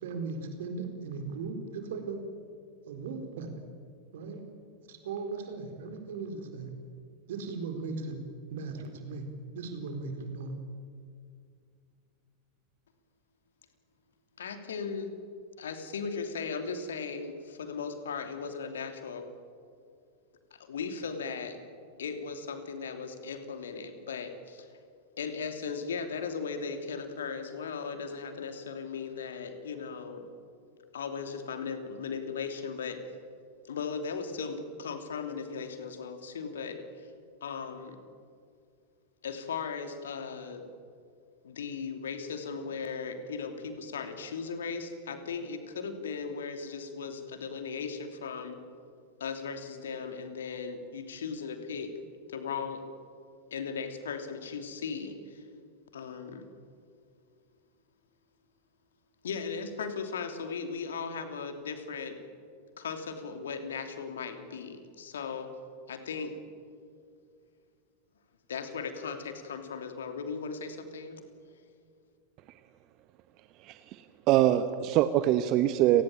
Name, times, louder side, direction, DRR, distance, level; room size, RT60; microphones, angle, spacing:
voice 1, 0.0-2.2 2.9-3.5 4.1-4.4 4.9-6.7 7.3-8.2 8.5-9.3 9.5-10.5, right 4 dB, 55° right, 6 dB, 4.3 m, -37 dB
voice 2, 14.4-15.1 15.6-19.3 20.5-21.6 22.0-24.7 25.2-30.3 30.9-33.0 33.7-37.1 37.4-38.0 39.2-40.7 41.4-48.6 49.2-51.9 52.3-52.8 53.5-55.4 55.9-56.5 59.2-62.2 62.8-65.5 65.9-66.4 68.5-71.2, left 5 dB, 65° left, 7 dB, 3.0 m, -37 dB
voice 3, 73.6-76.0, right 13 dB, 40° right, 11 dB, 1.1 m, -24 dB
30.0 x 19.0 x 9.1 m, 2.3 s
figure-of-eight pair, 90°, 0 cm